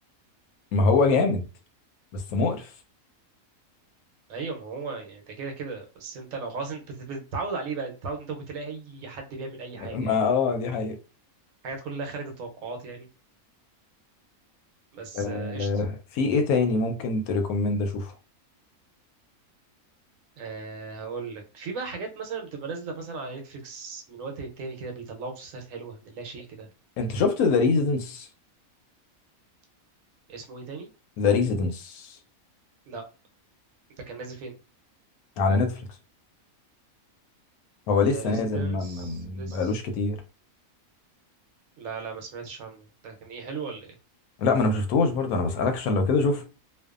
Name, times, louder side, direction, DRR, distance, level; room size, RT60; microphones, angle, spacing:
voice 1, 0.7-1.5 2.1-2.7 9.9-10.9 15.1-18.1 27.0-28.3 31.2-32.2 35.4-35.8 37.9-40.2 44.4-46.4, left 4 dB, 85° left, 1.0 m, -24 dB
voice 2, 4.3-10.2 11.6-13.1 14.9-15.8 20.4-26.7 30.3-30.9 32.9-33.1 34.1-34.5 38.1-39.8 41.8-44.0, right 4 dB, 70° right, 1.0 m, -37 dB
2.6 x 2.2 x 2.3 m
omnidirectional pair, 1.5 m